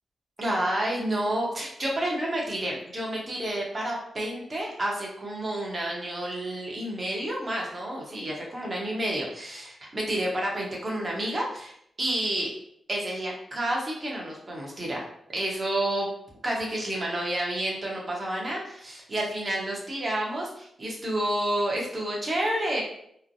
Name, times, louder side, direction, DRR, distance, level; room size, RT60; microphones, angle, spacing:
voice 1, 0.4-11.7 12.0-12.5 12.9-15.0 15.3-16.1 16.4-22.8, right 1 dB, 40° right, -2 dB, 1.0 m, -30 dB
3.0 x 2.1 x 2.6 m, 0.70 s
cardioid pair, 60°, 0 cm